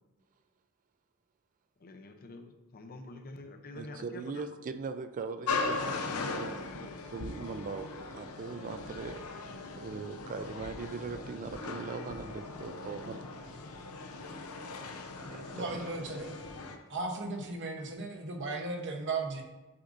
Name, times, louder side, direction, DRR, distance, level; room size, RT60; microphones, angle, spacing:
voice 1, 1.8-4.4, left 2 dB, 45° left, 7 dB, 0.6 m, -47 dB
voice 2, 3.8-7.9 8.1-9.2 9.7-13.2 15.3-15.9, right 4 dB, 35° right, 10 dB, 0.3 m, -40 dB
sound 1, 5.5-16.8, left 3 dB, 85° left, 0.7 m, -39 dB
voice 3, 15.5-16.3 16.9-19.4, right 3 dB, 55° right, 3 dB, 0.9 m, -36 dB
8.4 x 5.0 x 2.6 m, 1.1 s
head